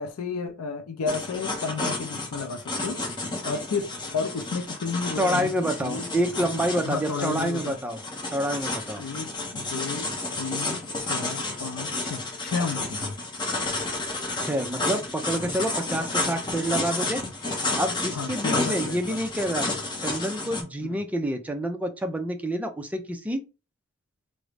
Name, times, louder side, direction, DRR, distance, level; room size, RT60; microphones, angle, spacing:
voice 1, 0.0-3.0 3.4-6.1 6.3-7.8 9.0-13.1 18.1-19.2 20.8-21.0, left 5 dB, 85° left, 0.4 m, -32 dB
sound 1, 1.1-20.6, left 2 dB, 20° left, 0.7 m, -31 dB
voice 2, 5.2-8.0 8.3-9.0 14.4-17.2 17.8-19.7 20.0-23.4, equal, 5° right, 0.4 m, -28 dB
3.6 x 2.0 x 3.3 m
head